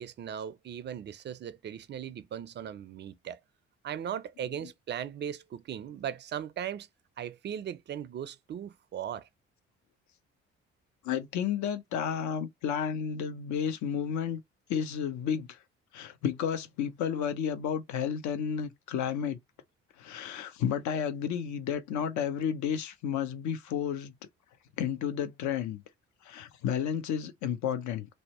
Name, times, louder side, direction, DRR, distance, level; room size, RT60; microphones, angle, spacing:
voice 1, 0.0-3.4 3.8-6.9 7.2-9.3, right 9 dB, 35° right, 0.4 m, -38 dB
voice 2, 11.0-14.4 14.7-15.6 15.9-19.4 20.0-24.1 24.8-25.8 26.2-28.1, left 8 dB, 60° left, 0.6 m, -32 dB
2.6 x 2.1 x 2.9 m
figure-of-eight pair, 45°, 33 cm